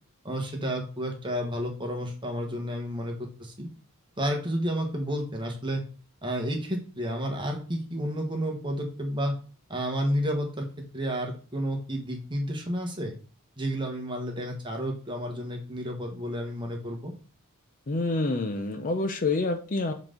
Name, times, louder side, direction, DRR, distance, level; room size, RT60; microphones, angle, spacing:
voice 1, 0.2-3.7 4.2-5.8 6.2-9.3 9.7-10.7 10.9-13.2 13.6-17.1, equal, 20° right, 1 dB, 1.3 m, -31 dB
voice 2, 17.9-19.9, left 3 dB, 35° left, 6 dB, 0.6 m, -27 dB
7.3 x 4.0 x 3.7 m, 0.39 s
head